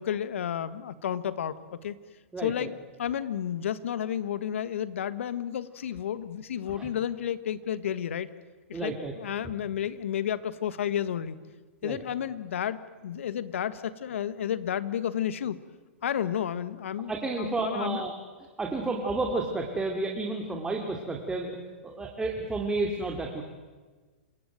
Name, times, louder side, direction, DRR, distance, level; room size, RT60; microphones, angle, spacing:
voice 1, 0.0-1.9 2.4-8.3 8.7-11.4 11.8-15.6 16.0-17.1 17.4-18.0, left 9 dB, 75° left, 15 dB, 1.5 m, -31 dB
voice 2, 2.3-2.7 6.7-6.9 8.7-9.1 11.8-12.0 17.1-18.1 18.6-21.6 21.8-23.4, right 3 dB, 10° right, 1 dB, 2.7 m, -31 dB
27.5 x 16.5 x 9.2 m, 1.4 s
hypercardioid pair, 130°, 7 cm